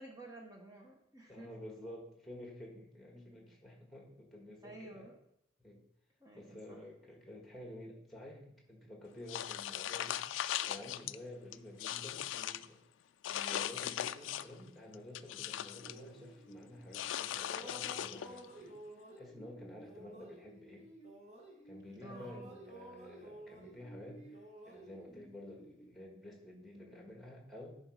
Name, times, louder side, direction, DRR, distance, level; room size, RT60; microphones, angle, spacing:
voice 1, 0.0-1.5 4.6-5.2 6.2-6.8 22.0-22.4, right 2 dB, 20° right, 0 dB, 1.0 m, -52 dB
voice 2, 1.3-5.1 5.6-5.8 6.3-10.2 10.6-12.8 13.2-18.7 19.2-20.9 21.6-24.3 24.6-27.8, left 1 dB, ahead, 0 dB, 1.6 m, -51 dB
sound 1, 9.3-11.2 11.5-12.7 13.2-14.6 14.9-16.0 16.9-18.5, left 11 dB, 80° left, 0.3 m, -39 dB
sound 2, 15.7-17.1 17.4-21.8 22.1-25.9, right 1 dB, 35° right, 1.5 m, -53 dB
10.5 x 4.0 x 4.9 m, 0.75 s
head